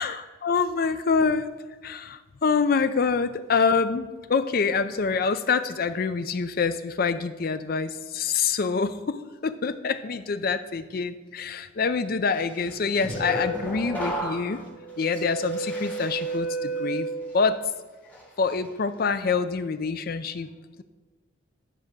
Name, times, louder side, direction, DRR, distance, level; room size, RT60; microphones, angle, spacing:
voice 1, 0.0-1.5 1.8-14.6 15.0-17.1 17.3-17.6 18.4-20.5, left 5 dB, 45° left, 11 dB, 0.4 m, -26 dB
sound 1, 12.6-17.7 18.1-18.5, right 2 dB, 10° left, 1.9 m, -32 dB
10.0 x 3.5 x 6.4 m, 1.3 s
head